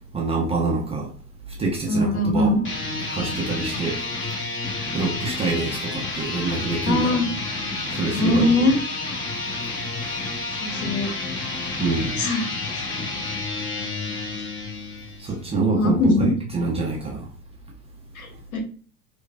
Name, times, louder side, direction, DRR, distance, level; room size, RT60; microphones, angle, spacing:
voice 1, 0.1-1.1 1.6-2.6 3.1-4.0 4.9-7.2 7.9-8.7 11.8-12.2 15.2-17.3, right 3 dB, 15° right, 0.5 m, -26 dB
voice 2, 1.9-2.6 6.9-7.3 8.1-8.8 10.6-11.1 12.2-12.5 15.5-16.3 18.1-18.6, left 2 dB, 65° left, 1.4 m, -21 dB
sound 1, 2.5-15.3, left 3 dB, 25° left, 1.1 m, -30 dB
4.5 x 2.3 x 2.3 m
figure-of-eight pair, 85°, 46 cm